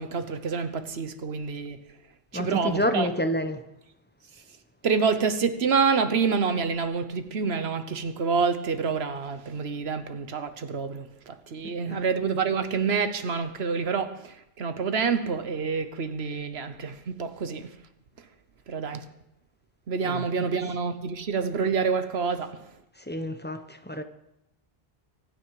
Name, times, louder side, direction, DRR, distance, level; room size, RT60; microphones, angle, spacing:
voice 1, 0.0-1.8 2.3-3.1 4.8-17.7 18.7-19.1 19.9-22.7, right 5 dB, 90° right, 1.3 m, -27 dB
voice 2, 2.3-3.6 11.6-12.0 20.0-20.2 23.1-24.0, left 1 dB, 10° left, 1.0 m, -29 dB
24.0 x 9.5 x 4.9 m
omnidirectional pair, 1.0 m